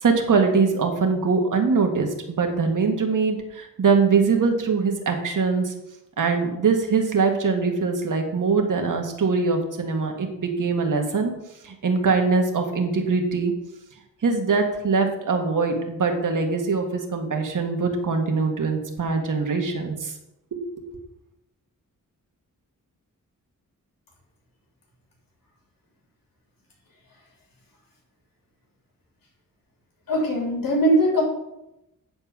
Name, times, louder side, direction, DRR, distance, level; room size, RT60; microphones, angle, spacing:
voice 1, 0.0-5.7 6.2-11.3 11.6-13.5 14.2-20.1 20.5-20.6, right 4 dB, 70° right, 3 dB, 1.7 m, -22 dB
voice 2, 30.1-31.2, right 1 dB, 85° left, -1 dB, 3.1 m, -20 dB
9.3 x 4.4 x 7.2 m, 0.88 s
cardioid pair, 75°, 33 cm